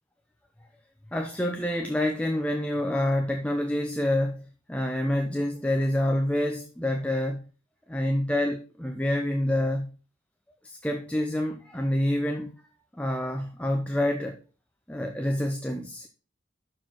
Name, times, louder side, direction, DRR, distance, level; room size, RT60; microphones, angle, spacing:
voice 1, 1.1-4.4 4.7-7.4 7.9-9.9 10.6-12.5 13.0-14.4 14.9-16.1, left 1 dB, 5° left, 0.7 m, -27 dB
6.3 x 4.7 x 5.8 m
head